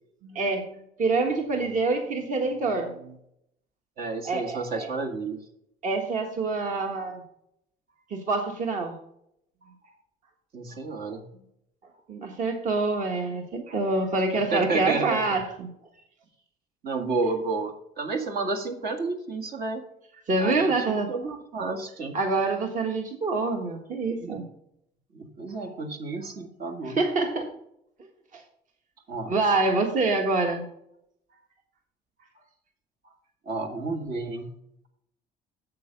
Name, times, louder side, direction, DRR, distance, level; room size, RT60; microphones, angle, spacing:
voice 1, 0.2-3.1 4.2-4.9 5.8-7.2 8.1-8.9 12.1-15.7 20.3-21.1 22.1-24.5 26.8-27.5 28.3-28.4 29.3-30.7, right 3 dB, 50° right, 3 dB, 1.5 m, -26 dB
voice 2, 4.0-5.4 10.5-11.3 14.3-15.2 16.8-19.8 20.4-22.2 24.2-24.5 25.1-27.0 29.1-29.3 33.5-34.5, right 3 dB, 65° right, 3 dB, 1.7 m, -31 dB
7.9 x 6.7 x 5.2 m, 0.74 s
cardioid pair, 110°, 17 cm